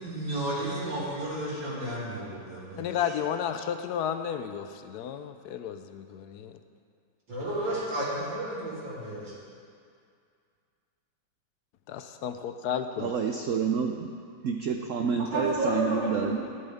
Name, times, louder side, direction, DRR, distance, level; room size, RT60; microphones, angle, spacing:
voice 1, 0.0-3.1 7.3-9.4 15.3-16.4, right 1 dB, 70° right, -10 dB, 3.9 m, -32 dB
voice 2, 2.8-6.6 11.9-13.1, left 8 dB, 75° left, 9 dB, 1.0 m, -32 dB
voice 3, 13.0-14.1 14.4-16.4, right 6 dB, 90° right, 4 dB, 0.6 m, -28 dB
14.0 x 12.5 x 3.5 m, 2.3 s
omnidirectional pair, 2.1 m